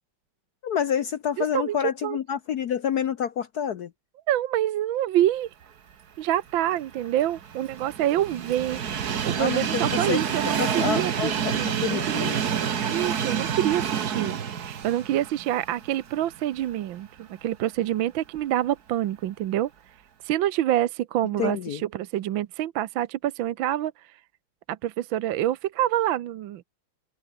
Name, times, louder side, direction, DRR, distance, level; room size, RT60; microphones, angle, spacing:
voice 1, 0.6-3.9 9.4-12.4 21.4-21.8, left 8 dB, 60° left, 1.1 m, -28 dB
voice 2, 1.4-1.8 2.0-2.2 4.3-5.5 6.2-12.6 12.9-19.7 20.2-23.9 24.7-26.6, right 12 dB, 70° right, 1.5 m, -27 dB
Train, 6.6-16.8 17.2-17.3 18.4-18.5, right 7 dB, 50° right, 1.8 m, -28 dB
open air
omnidirectional pair, 2.4 m